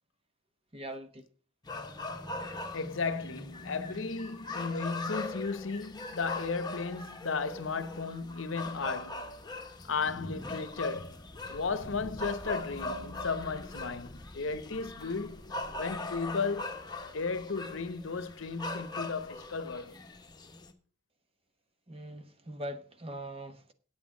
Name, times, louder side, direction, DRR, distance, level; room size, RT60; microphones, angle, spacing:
voice 1, 0.7-1.3 21.9-23.7, right 1 dB, 30° right, 1.1 m, -42 dB
sound 1, 1.6-20.7, left 2 dB, 20° left, 1.1 m, -41 dB
voice 2, 2.7-9.4 9.8-11.2 11.5-15.4 15.8-16.8 17.1-20.0, left 4 dB, 75° left, 0.8 m, -35 dB
8.7 x 8.3 x 6.1 m
head